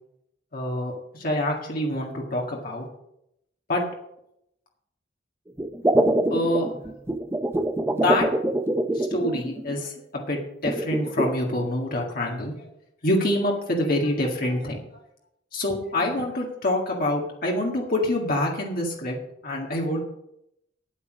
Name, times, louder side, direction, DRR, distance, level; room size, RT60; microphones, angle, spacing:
voice 1, 0.5-2.9 3.7-3.8 6.3-6.7 8.0-8.3 8.9-12.7 13.0-14.8 15.5-19.2 19.4-20.0, left 1 dB, 55° left, -1 dB, 1.9 m, -26 dB
sound 1, 5.6-9.8 10.6-11.3, right 1 dB, 15° right, 0.6 m, -24 dB
10.0 x 8.4 x 6.2 m, 0.79 s
head